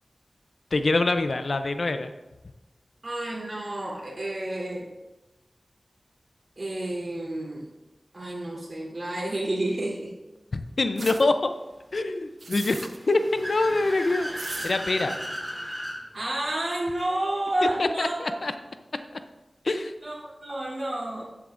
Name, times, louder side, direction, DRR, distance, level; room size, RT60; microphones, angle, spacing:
voice 1, 0.7-2.1 10.8-11.5 11.9-14.3 14.6-15.2 17.8-18.5 19.6-19.9, left 2 dB, 70° left, 8 dB, 0.6 m, -25 dB
voice 2, 3.0-4.9 6.6-7.7 8.1-10.1 16.1-18.3 20.0-21.2, right 1 dB, 50° right, -4 dB, 3.3 m, -30 dB
sound 1, 10.9-11.2 12.4-13.0 14.3-14.7, right 3 dB, 80° right, 0.5 m, -38 dB
Car / Accelerating revving vroom, 12.8-16.0, equal, 5° right, 3.0 m, -35 dB
12.0 x 8.3 x 2.6 m, 1.1 s
wide cardioid pair, 50°, 0 cm